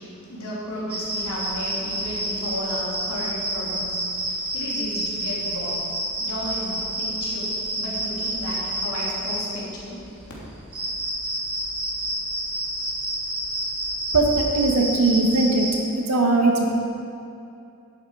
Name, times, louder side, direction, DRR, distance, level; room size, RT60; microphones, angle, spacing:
voice 1, 0.0-5.8 6.2-10.0, equal, 80° left, -6 dB, 2.9 m, -33 dB
sound 1, 0.9-15.7, right 1 dB, 25° right, 1.9 m, -29 dB
voice 2, 14.1-15.7 16.0-16.7, right 2 dB, 80° right, 0 dB, 1.5 m, -20 dB
11.0 x 8.2 x 4.8 m, 2.6 s
head